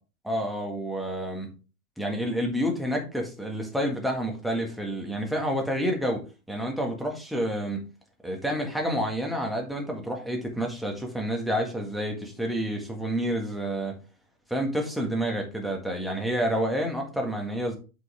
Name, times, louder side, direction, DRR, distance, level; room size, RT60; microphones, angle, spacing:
voice 1, 0.2-1.5 2.0-7.8 8.2-14.0 14.5-17.8, equal, ahead, 0 dB, 1.7 m, -29 dB
7.6 x 5.7 x 3.5 m, 0.33 s
hypercardioid pair, 120°, 44 cm